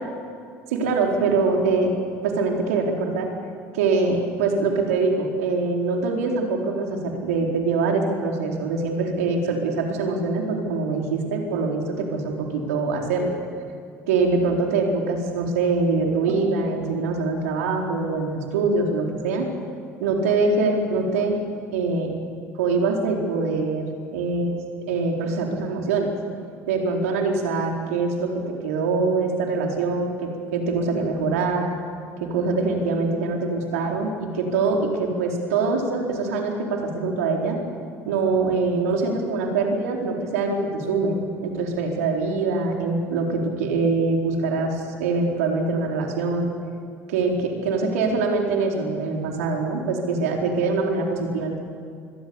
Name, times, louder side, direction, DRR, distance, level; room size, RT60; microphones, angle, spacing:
voice 1, 0.7-1.9 2.2-3.3 3.7-13.3 14.1-19.5 20.0-21.4 21.7-22.1 22.5-23.9 24.1-24.6 24.9-26.1 26.7-28.3 28.6-31.7 32.2-37.6 38.1-46.5 47.1-51.6, right 3 dB, 85° right, 1 dB, 4.3 m, -24 dB
28.5 x 22.5 x 7.2 m, 2.3 s
hypercardioid pair, 75°, 8 cm